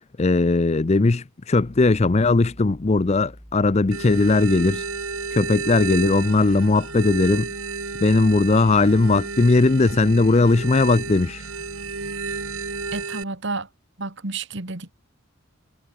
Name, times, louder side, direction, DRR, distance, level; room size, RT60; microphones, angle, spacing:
voice 1, 0.2-4.8 5.3-7.5 8.0-11.4, left 3 dB, 30° left, 0.5 m, -18 dB
sound 1, 1.6-13.0, equal, ahead, 4.0 m, -46 dB
sound 2, 3.9-13.2, right 4 dB, 85° right, 3.0 m, -32 dB
voice 2, 12.9-13.7 14.0-14.9, right 3 dB, 60° right, 2.1 m, -30 dB
head